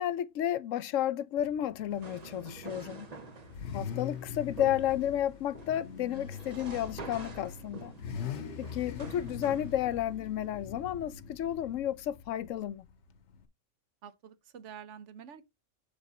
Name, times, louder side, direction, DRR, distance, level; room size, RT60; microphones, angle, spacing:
voice 1, 0.0-3.1 3.7-8.3 8.6-12.9, left 11 dB, 90° left, 1.0 m, -32 dB
Car / Idling / Accelerating revving vroom, 1.4-13.5, left 7 dB, 70° left, 1.1 m, -43 dB
sound 1, 1.9-9.7, right 4 dB, 35° right, 0.9 m, -48 dB
voice 2, 14.0-15.4, right 8 dB, 70° right, 1.0 m, -48 dB
6.4 x 3.5 x 6.0 m
omnidirectional pair, 1.3 m